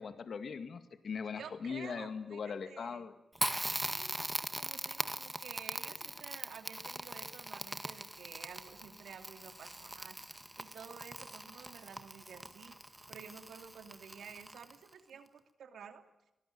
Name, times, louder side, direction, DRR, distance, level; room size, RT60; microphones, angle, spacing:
voice 1, 0.0-3.1, left 6 dB, 65° left, 9 dB, 2.1 m, -40 dB
voice 2, 1.3-3.0 3.8-10.2 10.6-12.7 13.1-16.0, right 7 dB, 80° right, 7 dB, 2.9 m, -51 dB
Crackle, 3.4-14.9, right 1 dB, 10° right, 1.7 m, -41 dB
24.0 x 18.5 x 8.8 m, 0.89 s
cardioid pair, 75°, 0 cm